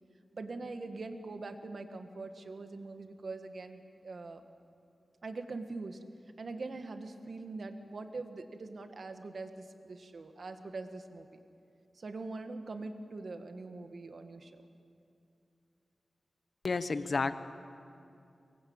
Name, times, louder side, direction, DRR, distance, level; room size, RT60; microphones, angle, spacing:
voice 1, 0.3-4.4 5.2-6.0 6.4-11.4 12.0-14.6, right 3 dB, 60° right, 7 dB, 1.7 m, -43 dB
voice 2, 16.6-17.3, left 4 dB, 55° left, 11 dB, 1.0 m, -31 dB
24.5 x 20.0 x 8.8 m, 2.6 s
wide cardioid pair, 105°, 0 cm